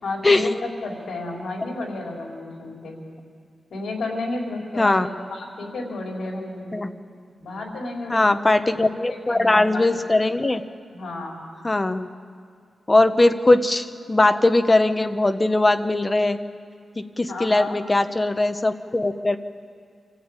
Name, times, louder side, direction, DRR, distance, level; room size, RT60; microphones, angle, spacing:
voice 1, 0.0-3.0 3.7-6.7 7.4-8.3 8.8-9.9 10.9-11.4 17.3-17.8, left 2 dB, 75° left, 0 dB, 4.7 m, -32 dB
voice 2, 4.8-5.1 6.7-6.9 8.1-10.6 11.6-12.1 12.9-16.4 17.0-19.4, left 2 dB, 20° left, 9 dB, 0.9 m, -20 dB
25.5 x 14.5 x 9.0 m, 2.2 s
wide cardioid pair, 125°, 0 cm